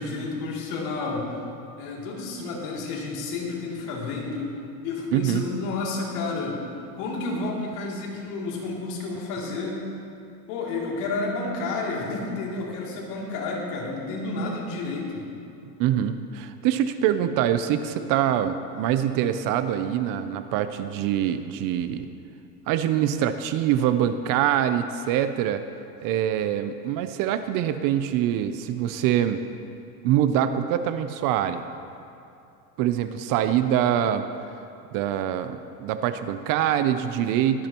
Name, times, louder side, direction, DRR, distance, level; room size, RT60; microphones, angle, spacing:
voice 1, 0.0-1.4 1.8-4.5 4.8-6.6 6.9-9.8 10.5-15.3, left 3 dB, 70° left, -3 dB, 2.9 m, -30 dB
voice 2, 5.1-5.4 15.8-22.1 22.7-25.6 26.0-29.4 30.0-31.6 32.8-34.2 34.9-37.7, right 10 dB, 45° right, 10 dB, 0.6 m, -24 dB
21.5 x 8.6 x 3.0 m, 2.6 s
supercardioid pair, 135°, 48 cm